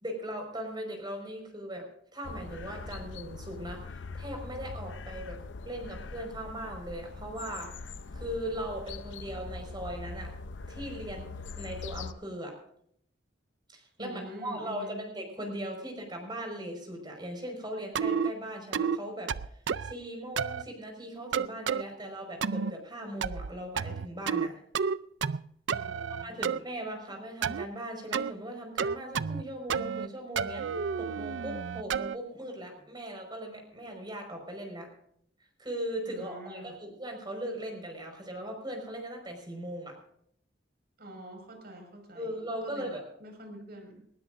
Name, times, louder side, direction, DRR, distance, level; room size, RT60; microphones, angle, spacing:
voice 1, 0.0-5.4 5.7-7.7 8.1-10.3 10.7-11.3 11.6-12.6 13.7-19.3 19.8-24.6 26.2-30.6 31.0-34.9 35.6-40.0 42.2-43.0, equal, 25° right, 2 dB, 5.2 m, -39 dB
sound 1, 2.2-12.1, left 3 dB, 80° left, 0.7 m, -42 dB
voice 2, 14.0-15.0 25.7-26.6 36.1-36.7 41.0-42.3 42.6-44.0, equal, 55° right, 4 dB, 5.5 m, -46 dB
sound 2, 17.9-18.3 18.7-19.0 19.3-19.9 20.4-20.6 21.3-21.8 22.4-22.7 23.2-23.5 23.8-24.5 24.7-25.4 25.7-26.6 27.4-27.7 28.1-28.3 28.8-29.4 29.7-30.1 30.4-32.2, right 6 dB, 75° right, 0.5 m, -30 dB
20.0 x 19.5 x 2.6 m, 0.68 s
head